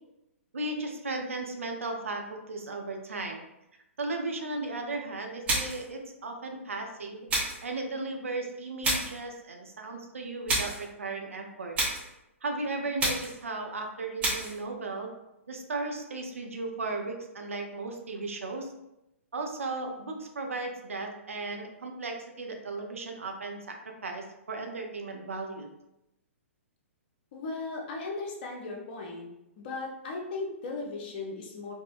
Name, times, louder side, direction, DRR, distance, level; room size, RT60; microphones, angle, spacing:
voice 1, 0.5-3.4 4.0-7.3 7.6-10.7 11.0-11.8 12.4-15.1 15.5-18.7 19.3-25.7, right 3 dB, 70° right, 3 dB, 0.5 m, -36 dB
sound 1, 5.5-5.9 7.3-7.7 8.8-9.2 10.5-10.8 11.7-12.1 13.0-13.4 14.2-14.6, right 2 dB, 15° right, 0.8 m, -29 dB
voice 2, 27.3-29.3 29.6-31.7, left 3 dB, 45° left, 0 dB, 0.6 m, -37 dB
3.5 x 2.1 x 2.4 m, 0.89 s
figure-of-eight pair, 115°, 8 cm